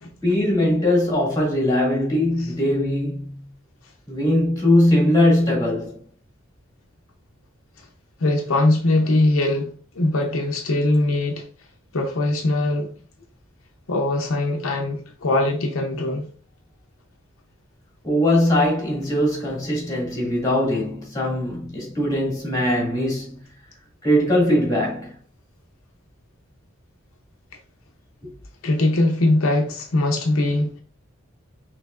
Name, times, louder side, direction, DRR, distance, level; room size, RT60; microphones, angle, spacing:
voice 1, 0.2-3.3 4.1-6.0 18.0-23.3 24.0-25.1, left 1 dB, 15° left, 2.3 m, -20 dB
voice 2, 8.2-11.5 11.9-12.9 13.9-16.3 28.6-30.8, left 2 dB, 75° left, 0.8 m, -21 dB
5.8 x 3.3 x 2.4 m
head